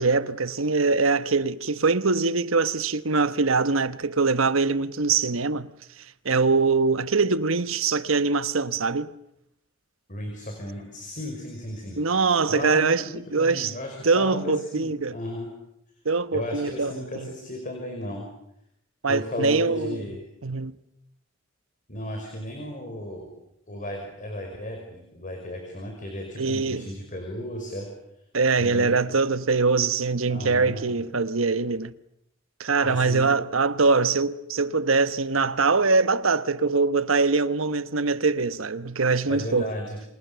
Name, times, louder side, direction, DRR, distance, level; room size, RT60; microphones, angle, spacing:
voice 1, 0.0-5.7 6.2-9.1 12.0-13.7 14.0-15.2 16.0-17.3 19.0-20.0 20.4-20.7 26.4-26.9 28.3-31.9 32.6-39.7, right 4 dB, 90° right, 1.2 m, -23 dB
voice 2, 10.1-12.0 12.5-13.1 13.4-15.5 16.3-18.3 19.1-20.2 21.9-23.4 23.7-27.9 28.6-28.9 30.3-31.0 32.8-33.3 39.3-40.0, left 1 dB, 40° left, 5.5 m, -34 dB
29.5 x 26.0 x 7.0 m
head